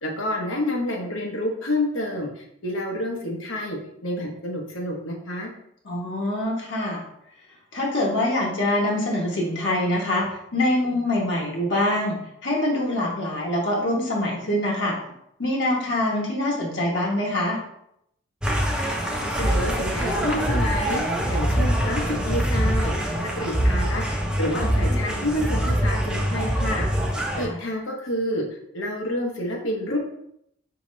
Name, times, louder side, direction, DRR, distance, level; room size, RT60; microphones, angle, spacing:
voice 1, 0.0-5.5 19.0-21.0 21.3-22.9 23.4-24.0 24.4-26.9 27.4-28.4 28.7-30.0, left 1 dB, 90° left, 0 dB, 0.9 m, -28 dB
voice 2, 5.8-7.0 7.7-10.3 10.5-12.2 12.4-15.0 15.4-17.6 27.3-27.6, left 1 dB, 65° left, -2 dB, 1.2 m, -24 dB
sound 1, 18.4-27.4, equal, 5° right, 0.4 m, -24 dB
4.9 x 2.9 x 3.1 m, 0.75 s
head